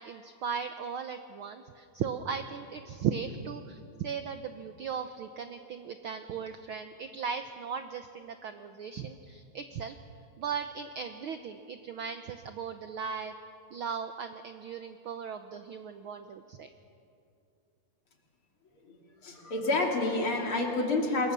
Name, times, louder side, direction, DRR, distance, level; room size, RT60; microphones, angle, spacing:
voice 1, 0.0-10.0 10.4-13.3 13.7-16.7, right 7 dB, 80° right, 8 dB, 1.2 m, -37 dB
voice 2, 19.2-21.3, left 2 dB, 45° left, 1 dB, 3.3 m, -28 dB
27.0 x 22.5 x 6.9 m, 2.6 s
omnidirectional pair, 3.5 m